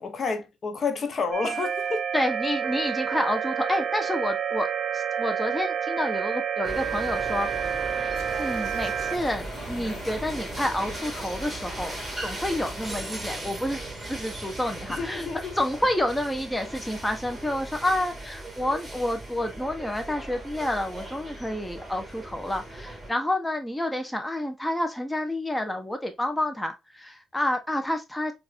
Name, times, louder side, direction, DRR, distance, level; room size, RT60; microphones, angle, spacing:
voice 1, 0.0-2.0 14.9-15.5, left 4 dB, 45° left, 0.7 m, -30 dB
sound 1, 1.3-9.2, right 8 dB, 50° right, 0.4 m, -29 dB
voice 2, 2.1-4.7 4.9-7.5 8.4-13.8 14.1-15.3 15.5-28.3, left 1 dB, 10° left, 0.6 m, -29 dB
sound 2, 6.6-23.1, right 1 dB, 10° right, 1.8 m, -38 dB
sound 3, 8.1-13.0, left 4 dB, 80° left, 1.0 m, -47 dB
4.6 x 2.4 x 2.4 m
cardioid pair, 90°, 0 cm